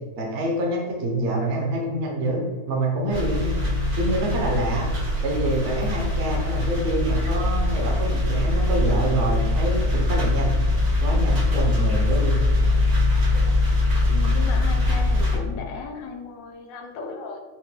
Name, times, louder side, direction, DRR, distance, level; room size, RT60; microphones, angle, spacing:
voice 1, 0.2-3.6 4.0-4.9 5.2-10.6 11.0-12.4, right 1 dB, 60° right, -1 dB, 1.0 m, -26 dB
sound 1, 3.1-15.4, left 2 dB, 80° right, 1.6 m, -22 dB
voice 2, 14.1-17.4, left 4 dB, 70° left, 3 dB, 1.0 m, -36 dB
5.8 x 2.1 x 3.1 m, 1.3 s
omnidirectional pair, 1.6 m